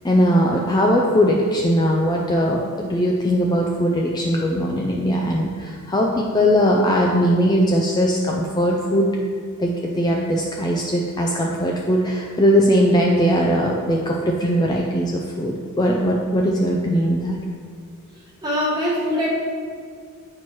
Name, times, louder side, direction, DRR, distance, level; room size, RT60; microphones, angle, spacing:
voice 1, 0.0-9.1 9.6-17.4, equal, 20° left, -1 dB, 0.3 m, -20 dB
voice 2, 18.4-19.3, left 1 dB, 20° right, -6 dB, 1.4 m, -22 dB
8.6 x 4.4 x 3.0 m, 2.1 s
head